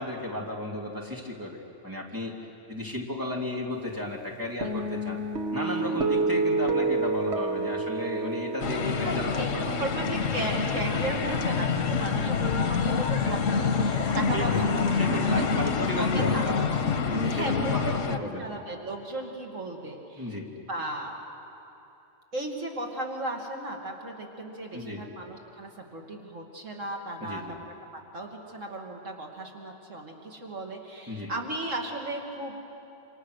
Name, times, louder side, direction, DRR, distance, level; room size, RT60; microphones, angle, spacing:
voice 1, 0.0-2.3 2.7-5.2 5.5-9.8 14.3-14.7 15.0-18.5 20.2-20.5 24.7-25.0 27.2-27.6 31.1-31.3, left 1 dB, 15° right, -1 dB, 2.9 m, -34 dB
Guitar, 4.6-11.2, right 3 dB, 60° right, 1.6 m, -30 dB
voice 2, 4.6-5.0 5.8-6.2 9.0-14.8 15.2-15.5 15.8-16.5 17.2-20.3 20.7-21.1 22.3-32.5, right 1 dB, 85° right, 0 dB, 2.8 m, -36 dB
sound 1, 8.6-18.2, left 5 dB, 90° left, 1.4 m, -27 dB
28.0 x 27.0 x 6.5 m, 2.8 s
omnidirectional pair, 1.3 m